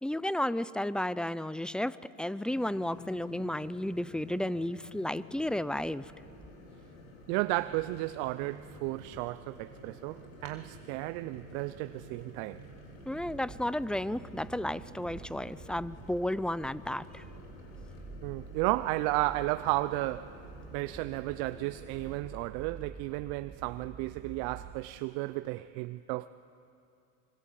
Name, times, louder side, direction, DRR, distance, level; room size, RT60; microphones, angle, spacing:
voice 1, 0.0-6.1 13.1-17.2, left 1 dB, ahead, 0.5 m, -33 dB
sound 1, 2.5-22.2, left 1 dB, 90° left, 3.7 m, -51 dB
sound 2, 5.3-24.8, right 5 dB, 35° right, 1.7 m, -51 dB
voice 2, 7.3-12.6 18.2-20.4 20.7-26.3, right 19 dB, 65° right, 0.7 m, -33 dB
25.5 x 23.0 x 7.6 m
hypercardioid pair, 85°, 40 cm